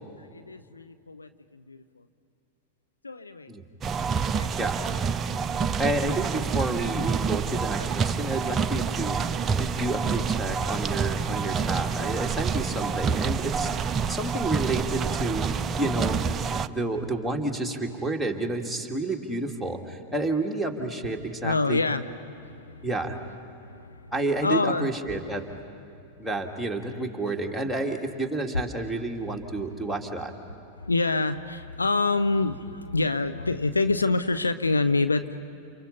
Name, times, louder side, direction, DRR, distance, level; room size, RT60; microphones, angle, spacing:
voice 1, 0.3-2.0 3.0-3.5 4.3-4.5 5.6-5.7 7.8-7.9 21.4-22.0 22.3-22.9 23.6-24.1 24.4-24.9 30.8-35.4, left 3 dB, 80° left, 10 dB, 0.8 m, -27 dB
sound 1, 3.8-16.7, right 5 dB, 25° right, 0.6 m, -27 dB
voice 2, 4.6-4.9 5.8-9.2 9.6-15.4 15.8-16.2 16.7-21.8 22.8-23.2 24.1-25.4 26.2-30.3, right 2 dB, ahead, -1 dB, 2.5 m, -30 dB
30.0 x 29.5 x 5.7 m, 2.4 s
figure-of-eight pair, 90°, 0 cm